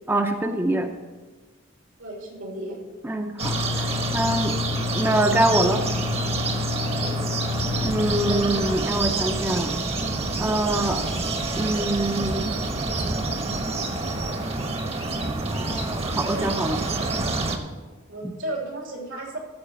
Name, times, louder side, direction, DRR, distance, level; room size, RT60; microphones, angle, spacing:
voice 1, 0.1-0.9 3.0-3.9 4.1-4.6 4.9-5.8 7.8-9.7 10.4-11.0 11.6-12.6 15.4-16.8 18.2-18.3, right 1 dB, 10° right, 5 dB, 0.6 m, -24 dB
voice 2, 2.0-2.8 6.9-7.2 8.1-8.7 18.1-19.4, right 1 dB, 80° right, -1 dB, 3.2 m, -33 dB
sound 1, 3.4-8.4, left 5 dB, 45° left, 0.5 m, -29 dB
sound 2, 3.4-17.6, right 3 dB, 30° right, 1.0 m, -28 dB
sound 3, 7.6-14.4, right 2 dB, 55° right, 1.8 m, -34 dB
14.0 x 4.9 x 7.1 m, 1.4 s
head